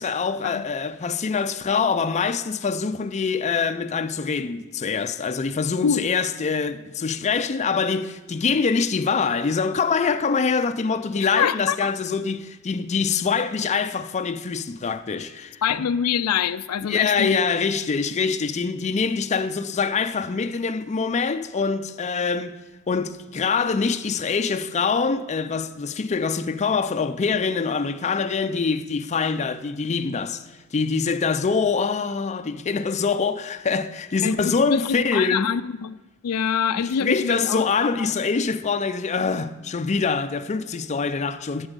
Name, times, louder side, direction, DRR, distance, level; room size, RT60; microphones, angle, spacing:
voice 1, 0.0-15.9 16.9-22.6 22.9-30.4 30.7-35.5 37.0-41.7, left 5 dB, 30° left, 0.4 m, -24 dB
voice 2, 11.2-11.9 15.6-17.4 34.2-36.0 36.2-38.1, left 7 dB, 90° left, 0.4 m, -25 dB
8.8 x 8.0 x 8.1 m
head